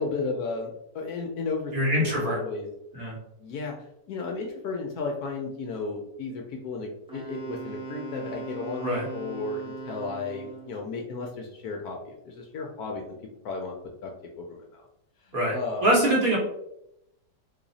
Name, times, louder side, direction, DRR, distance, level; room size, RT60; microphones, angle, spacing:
voice 1, 0.0-2.7 3.4-3.7 4.1-13.0 13.4-13.8 14.0-14.1 14.4-14.8 15.2-15.9, left 4 dB, 70° left, 1 dB, 0.9 m, -34 dB
voice 2, 1.7-2.4 2.9-3.2 8.8-9.1 15.3-16.4, right 1 dB, 55° right, -5 dB, 1.4 m, -24 dB
Wind instrument woodwind instrument, 7.1-10.8, right 5 dB, 5° right, 0.4 m, -39 dB
3.2 x 2.3 x 3.9 m, 0.80 s
omnidirectional pair, 1.9 m